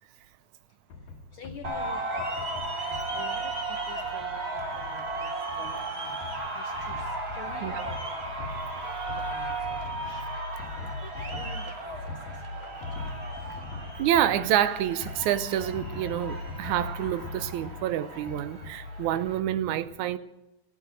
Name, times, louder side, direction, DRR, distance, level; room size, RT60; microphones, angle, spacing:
sound 1, 0.9-19.3, left 3 dB, 85° left, 3.1 m, -41 dB
voice 1, 1.3-2.5 3.1-5.3 5.6-6.2 6.5-7.1 7.3-8.2 9.0-9.8 10.1-10.2 11.0-12.0 12.5-13.1, left 6 dB, 65° left, 1.3 m, -47 dB
sound 2, 1.6-19.4, right 2 dB, 30° right, 1.2 m, -35 dB
voice 2, 14.0-20.2, right 11 dB, 85° right, 2.1 m, -28 dB
15.0 x 8.7 x 9.0 m
omnidirectional pair, 3.4 m